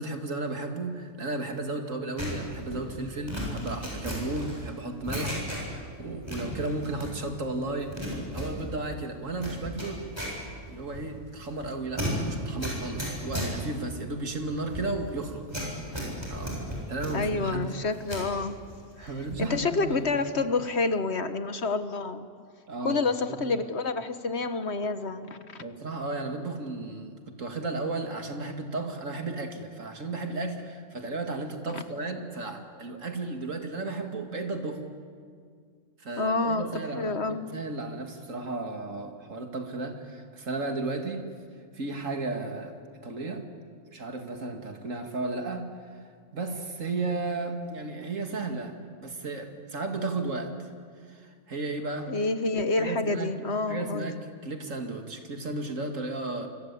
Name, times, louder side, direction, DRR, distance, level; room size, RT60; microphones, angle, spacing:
voice 1, 0.0-10.1 10.7-15.5 16.3-17.7 19.0-20.0 20.4-20.5 22.7-23.0 23.3-23.4 25.6-34.9 36.0-41.3 41.7-43.5 43.9-45.7 46.3-50.7 51.1-52.1 52.8-53.3 53.7-56.5, right 2 dB, 70° right, 4 dB, 2.7 m, -34 dB
sound 1, 2.2-5.9 6.2-7.4 7.7-18.3 18.7-19.6 19.8-20.1, equal, 20° right, 7.8 m, -35 dB
voice 2, 17.1-18.6 19.0-19.1 19.4-22.3 22.8-25.6 31.7-31.8 36.2-36.7 36.9-37.4 52.1-54.1, left 3 dB, 55° left, 10 dB, 1.4 m, -28 dB
27.5 x 25.5 x 8.5 m, 2.1 s
omnidirectional pair, 1.4 m